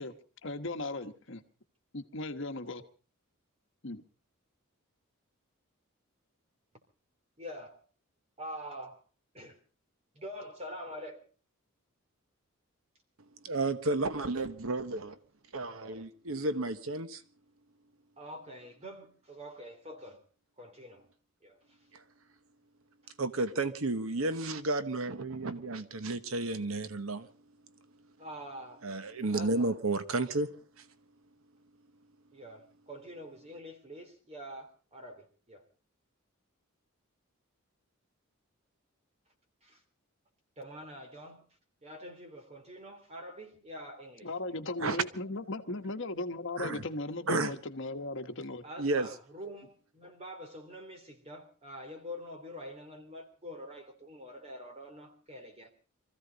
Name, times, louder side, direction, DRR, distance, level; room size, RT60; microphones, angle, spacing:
voice 1, 0.4-1.4 1.9-2.8 3.8-4.0 44.2-48.6, left 2 dB, 60° left, 1.3 m, -37 dB
voice 2, 7.4-7.8 8.4-9.0 9.3-9.6 10.1-11.2 15.7-16.1 18.2-20.2 20.6-21.1 21.4-21.8 28.2-28.8 29.3-29.7 32.3-35.6 39.6-39.8 40.6-41.4 41.8-44.3 48.6-55.7, equal, 30° right, 3.2 m, -45 dB
voice 3, 13.4-15.2 15.5-17.2 21.9-22.0 23.2-27.3 28.8-30.8 44.8-45.0 46.6-46.8 47.3-47.5 48.8-49.1, right 2 dB, 75° right, 1.1 m, -32 dB
24.5 x 15.0 x 4.0 m
head